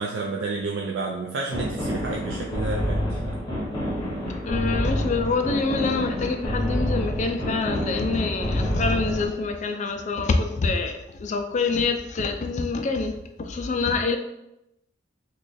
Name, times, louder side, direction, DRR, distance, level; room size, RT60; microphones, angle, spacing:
voice 1, 0.0-3.4, right 3 dB, 75° right, -1 dB, 0.4 m, -30 dB
sound 1, 1.5-9.3, equal, 20° left, 0.8 m, -28 dB
voice 2, 3.6-14.2, left 4 dB, 40° left, 5 dB, 0.3 m, -26 dB
3.0 x 2.3 x 4.0 m, 0.87 s
head